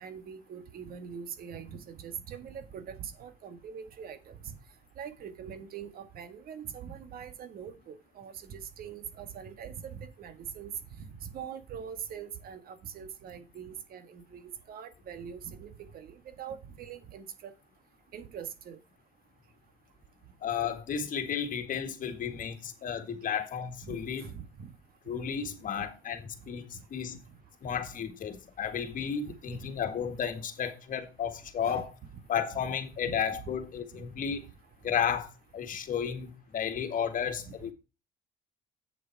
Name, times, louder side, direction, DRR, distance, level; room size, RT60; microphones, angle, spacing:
voice 1, 0.0-4.4 5.0-10.7 11.0-17.5 18.1-18.8 23.8-24.7 29.2-29.7 31.6-31.8 32.1-32.2 33.0-33.6 33.9-34.0 34.3-34.4, right 7 dB, 60° right, 1.7 m, -43 dB
voice 2, 20.4-24.3 25.1-27.2 27.6-31.9 32.3-34.4 34.8-37.7, left 8 dB, 55° left, 1.8 m, -33 dB
8.3 x 7.2 x 4.6 m
cardioid pair, 110°, 17 cm